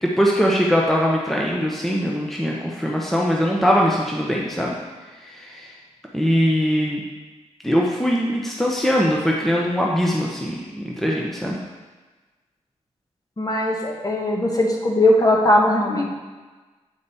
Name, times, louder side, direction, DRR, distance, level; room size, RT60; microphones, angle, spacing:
voice 1, 0.0-4.7 5.2-5.7 6.1-7.0 7.6-11.6, equal, ahead, -3 dB, 0.9 m, -21 dB
voice 2, 13.4-16.1, left 1 dB, 30° left, -1 dB, 1.4 m, -19 dB
8.2 x 5.2 x 4.2 m, 1.3 s
cardioid pair, 75°, 12 cm